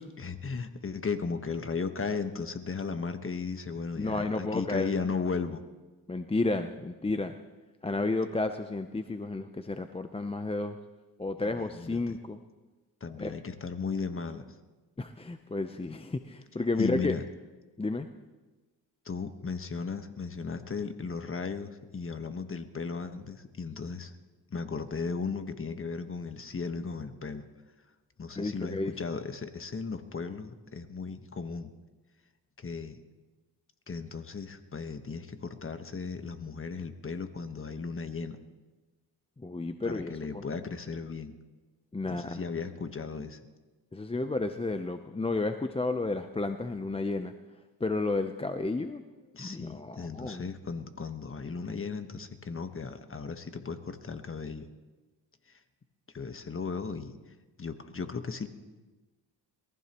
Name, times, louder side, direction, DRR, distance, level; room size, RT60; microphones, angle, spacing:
voice 1, 0.2-5.6 11.4-12.0 13.0-14.4 16.8-17.2 19.0-24.1 24.5-27.5 28.2-31.7 32.6-33.0 33.9-38.4 39.8-41.4 42.0-43.4 49.3-54.7 56.1-57.1 57.6-58.5, left 5 dB, 30° left, 8 dB, 1.3 m, -36 dB
voice 2, 4.0-4.9 6.1-7.4 7.8-10.8 11.2-12.4 13.2-13.3 15.0-17.2 17.8-18.1 28.4-28.9 39.4-40.4 41.9-42.4 43.9-47.3 47.8-49.0 49.4-50.5, left 2 dB, 15° left, 8 dB, 0.7 m, -32 dB
22.5 x 15.0 x 3.0 m, 1.2 s
cardioid pair, 70°, 44 cm